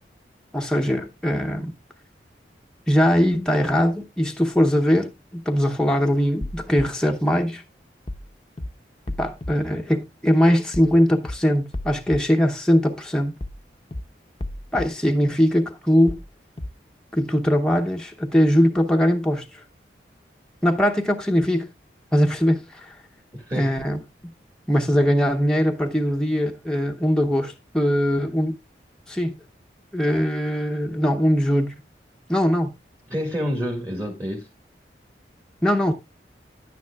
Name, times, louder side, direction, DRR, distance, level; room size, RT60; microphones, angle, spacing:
voice 1, 0.5-1.7 2.9-7.6 9.2-13.3 14.7-16.2 17.1-19.6 20.6-21.7 22.1-23.0 23.5-24.0 24.7-28.6 29.1-29.3 29.9-31.7 32.3-32.7 35.6-35.9, equal, 5° left, 0.8 m, -21 dB
sound 1, 6.4-6.8 8.1-8.3 8.6-8.7 9.1-9.5 10.7-10.9 11.2-11.3 11.7-12.2 13.4-13.6 13.9-14.0 14.4-14.8 16.1-16.3 16.6-16.7, left 1 dB, 30° left, 0.7 m, -32 dB
voice 2, 23.3-23.7 33.1-34.5, equal, 20° right, 1.7 m, -28 dB
10.5 x 9.3 x 2.3 m
head